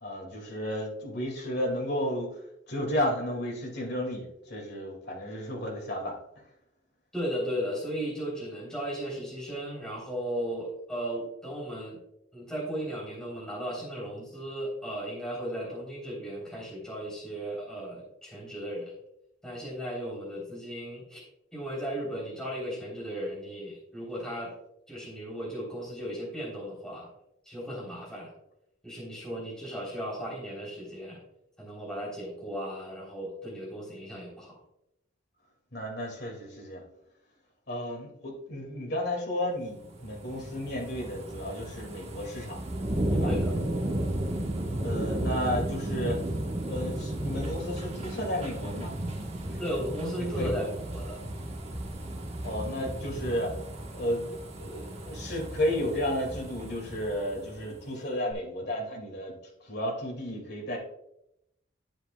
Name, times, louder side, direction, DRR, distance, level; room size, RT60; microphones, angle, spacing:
voice 1, 0.0-2.4 2.7-6.2 35.7-36.8 37.7-42.6 43.1-43.3 44.8-46.2 46.7-48.9 49.5-49.6 50.3-50.6 52.4-53.5 53.9-54.2 54.6-59.3 59.6-60.8, equal, 55° left, 1 dB, 2.2 m, -33 dB
voice 2, 7.1-12.0 12.3-18.9 19.4-21.2 21.5-24.5 24.9-27.1 27.5-28.3 28.8-31.2 31.6-34.6 43.2-43.5 49.6-51.2, equal, 5° left, -4 dB, 3.4 m, -36 dB
sound 1, 39.7-57.9 58.3-58.4, right 1 dB, 35° right, 1.2 m, -34 dB
10.0 x 7.8 x 2.3 m, 0.80 s
head